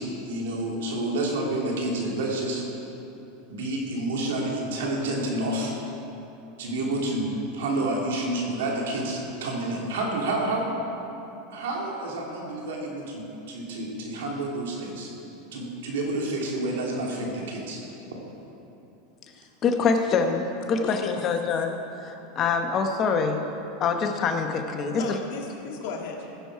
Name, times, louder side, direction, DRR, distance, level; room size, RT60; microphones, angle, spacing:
voice 1, 0.0-2.6 3.5-5.7 6.6-10.7 11.5-15.1 15.5-17.8, right 2 dB, 85° right, -2 dB, 2.6 m, -29 dB
voice 2, 19.6-23.4 23.8-25.2, left 5 dB, 35° left, 5 dB, 1.0 m, -25 dB
voice 3, 20.7-21.4 25.0-26.4, left 4 dB, 65° left, -1 dB, 1.9 m, -35 dB
16.0 x 7.2 x 4.7 m, 2.9 s
supercardioid pair, 120°, 0 cm